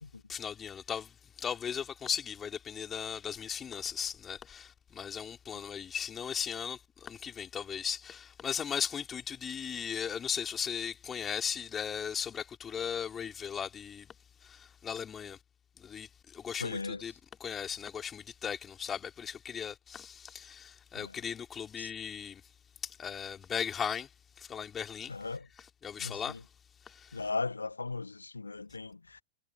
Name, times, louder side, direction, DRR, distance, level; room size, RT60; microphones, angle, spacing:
voice 1, 0.3-14.1 14.4-15.4 15.8-17.1 17.4-22.4 22.8-24.1 24.4-25.1 25.8-26.4 26.9-27.2, left 7 dB, 20° left, 3.6 m, -37 dB
voice 2, 16.6-17.0 21.0-21.2 21.8-21.9 25.1-25.5 26.0-26.4 27.1-29.2, left 3 dB, 80° left, 1.5 m, -37 dB
figure-of-eight pair, 90°, 0 cm